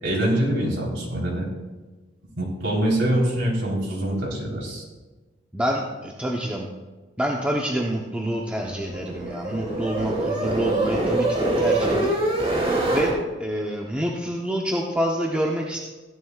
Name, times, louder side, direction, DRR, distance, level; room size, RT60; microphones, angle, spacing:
voice 1, 0.0-1.5 2.4-4.8, right 1 dB, 80° right, -3 dB, 4.0 m, -24 dB
voice 2, 5.5-6.7 7.2-12.6 12.9-13.1 13.4-15.8, equal, 5° right, -1 dB, 0.9 m, -27 dB
sound 1, 8.4-13.1, right 2 dB, 35° right, 2.7 m, -24 dB
16.0 x 11.0 x 2.4 m, 1.2 s
head